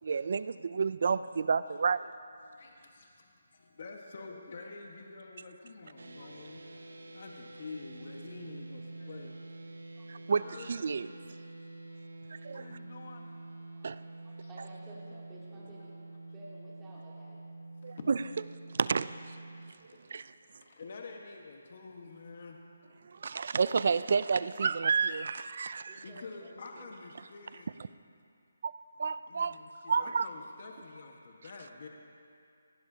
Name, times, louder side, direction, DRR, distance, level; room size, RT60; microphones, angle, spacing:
voice 1, 0.0-2.0 10.1-11.1 12.4-12.6 13.8-14.0 17.8-18.2 18.8-19.1 20.1-20.2 23.0-26.0 28.6-28.7 29.0-29.6 29.9-30.3, right 5 dB, 55° right, 15 dB, 0.4 m, -30 dB
voice 2, 2.4-9.4 10.2-10.7 11.3-11.4 12.5-13.3 14.4-14.5 15.8-15.9 17.8-18.4 19.9-20.0 20.5-22.6 26.0-27.7 29.3-31.9, left 4 dB, 50° left, 1 dB, 1.4 m, -48 dB
sound 1, 6.0-19.7, right 2 dB, 85° right, 0.9 m, -47 dB
voice 3, 9.6-10.5 11.9-12.0 12.3-12.6 13.6-17.5 25.7-26.9, right 1 dB, 15° right, -7 dB, 2.7 m, -54 dB
18.0 x 15.5 x 2.8 m, 2.5 s
hypercardioid pair, 165°, 0 cm